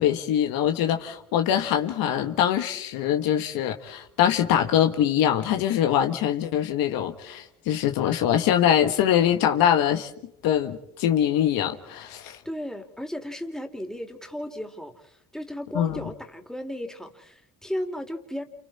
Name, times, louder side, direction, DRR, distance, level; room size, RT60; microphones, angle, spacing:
voice 1, 0.0-10.1 10.4-12.4 15.7-16.0, left 10 dB, 85° left, 1.8 m, -23 dB
voice 2, 12.4-18.4, equal, ahead, 3.2 m, -35 dB
29.5 x 28.5 x 4.4 m
supercardioid pair, 75°, 34 cm